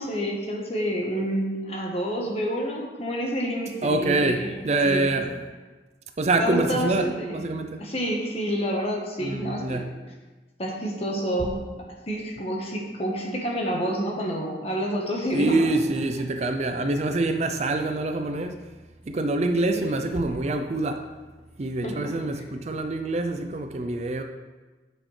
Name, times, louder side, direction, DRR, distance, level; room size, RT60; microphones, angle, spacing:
voice 1, 0.0-4.5 4.8-5.1 6.4-7.3 7.8-9.8 10.6-15.7 19.7-20.0 21.8-22.1, equal, 35° left, -1 dB, 1.2 m, -28 dB
voice 2, 3.8-5.3 6.2-7.8 9.2-9.9 15.3-18.6 19.1-21.1 21.6-24.2, right 2 dB, 40° right, 6 dB, 0.4 m, -25 dB
9.0 x 6.2 x 3.3 m, 1.3 s
head